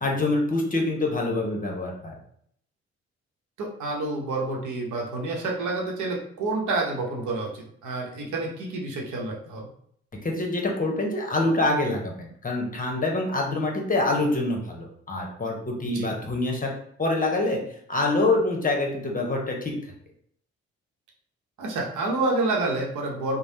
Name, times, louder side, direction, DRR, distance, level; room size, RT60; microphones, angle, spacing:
voice 1, 0.0-2.1 10.2-16.7 17.0-17.6 17.9-19.7, left 2 dB, 25° left, 0 dB, 0.9 m, -25 dB
voice 2, 3.6-9.7 15.8-16.1 21.6-23.4, right 2 dB, 65° right, 0 dB, 0.8 m, -28 dB
3.2 x 2.0 x 2.7 m, 0.67 s
hypercardioid pair, 45°, 32 cm